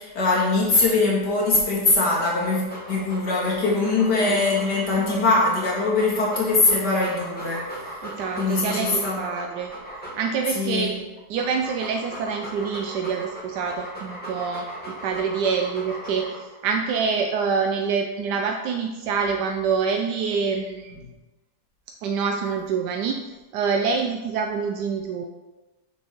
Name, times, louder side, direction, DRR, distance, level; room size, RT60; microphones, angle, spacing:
voice 1, 0.0-7.6 8.4-9.2 10.5-10.9, left 3 dB, 80° left, -4 dB, 2.5 m, -22 dB
Dog, 2.5-10.6 11.2-16.6, right 1 dB, 5° left, 1.9 m, -38 dB
voice 2, 3.8-4.4 8.0-9.7 10.2-11.0 11.3-20.9 22.0-23.2 23.5-25.2, right 5 dB, 85° right, 3 dB, 1.2 m, -26 dB
6.4 x 5.9 x 4.4 m, 1.1 s
omnidirectional pair, 1.8 m